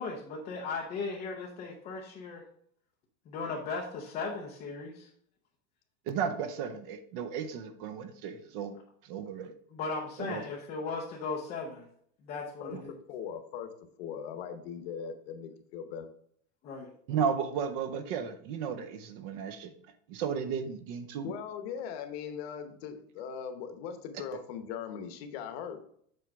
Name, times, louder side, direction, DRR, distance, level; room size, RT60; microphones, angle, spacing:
voice 1, 0.0-2.4 3.3-5.1 9.7-11.9 12.2-12.9 16.6-16.9, left 4 dB, 15° left, -1 dB, 0.4 m, -37 dB
voice 2, 6.1-8.7 9.0-9.5 10.3-10.4 12.7-12.8 17.1-19.7 20.1-21.3, right 7 dB, 40° right, 8 dB, 0.6 m, -34 dB
voice 3, 13.1-13.7 14.0-16.1 21.2-25.8, left 7 dB, 45° left, 7 dB, 1.0 m, -40 dB
7.7 x 5.0 x 3.4 m, 0.65 s
supercardioid pair, 165°, 42 cm